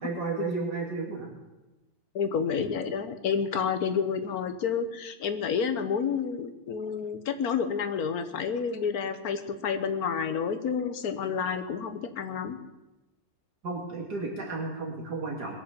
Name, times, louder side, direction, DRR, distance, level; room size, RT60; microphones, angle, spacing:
voice 1, 0.0-1.3 13.6-15.6, right 3 dB, 65° right, -2 dB, 3.0 m, -33 dB
voice 2, 2.1-12.6, left 6 dB, 60° left, 9 dB, 1.5 m, -29 dB
21.0 x 7.5 x 7.4 m, 1.0 s
omnidirectional pair, 1.9 m